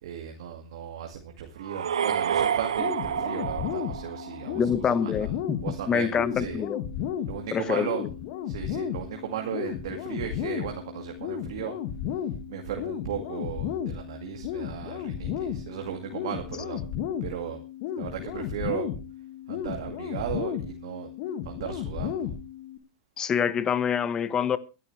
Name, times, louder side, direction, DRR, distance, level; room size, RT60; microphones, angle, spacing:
voice 1, 0.0-6.6 7.3-8.1 8.4-11.8 12.5-16.8 17.2-17.6 18.0-18.9 19.5-21.1 21.4-22.3, right 9 dB, 70° right, 2.2 m, -36 dB
sound 1, 1.6-4.7, right 8 dB, 90° right, 1.0 m, -29 dB
sound 2, 2.8-22.8, left 9 dB, 55° left, 2.0 m, -34 dB
voice 2, 4.5-5.6 5.9-6.8 7.5-7.9 23.2-24.6, left 7 dB, 25° left, 1.2 m, -26 dB
23.0 x 11.0 x 3.3 m
hypercardioid pair, 120°, 3 cm